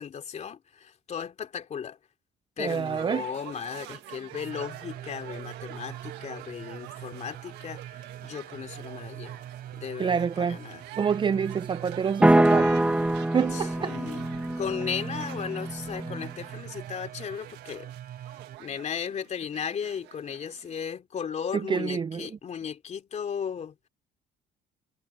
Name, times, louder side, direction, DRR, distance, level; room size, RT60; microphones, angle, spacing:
voice 1, 0.0-2.0 2.6-9.4 9.7-10.8 13.5-14.2 14.6-17.9 18.6-23.9, left 7 dB, 45° left, 3.2 m, -36 dB
voice 2, 2.6-3.3 10.0-10.6 11.0-12.8 13.3-14.0 21.7-22.3, right 6 dB, 30° right, 0.6 m, -27 dB
sound 1, 2.6-20.8, right 16 dB, 90° right, 1.7 m, -47 dB
sound 2, 4.3-18.6, right 11 dB, 60° right, 7.0 m, -43 dB
sound 3, 12.2-16.3, right 1 dB, 5° right, 1.1 m, -24 dB
cardioid pair, 110°, 17 cm